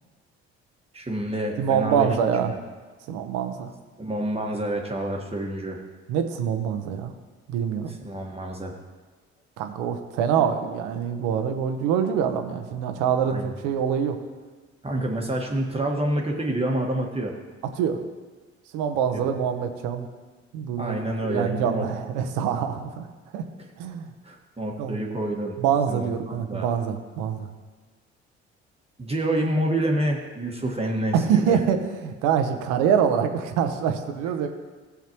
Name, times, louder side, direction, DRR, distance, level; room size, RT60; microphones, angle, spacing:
voice 1, 0.9-2.1 2.5-2.6 4.0-5.8 7.9-8.8 13.2-13.5 14.8-17.3 19.1-19.3 20.8-21.8 23.6-23.7 24.2-25.6 25.9-26.7 29.0-31.6, right 1 dB, 20° right, 0 dB, 1.5 m, -28 dB
voice 2, 1.6-2.5 3.1-3.7 6.1-7.1 7.5-7.9 9.6-14.2 17.8-18.0 18.7-20.1 20.5-21.0 21.2-23.1 23.3-23.4 23.8-24.1 24.8-25.0 25.6-27.5 31.1-34.5, right 8 dB, 70° right, 7 dB, 1.0 m, -25 dB
15.0 x 7.3 x 3.0 m, 1.3 s
hypercardioid pair, 55°, 32 cm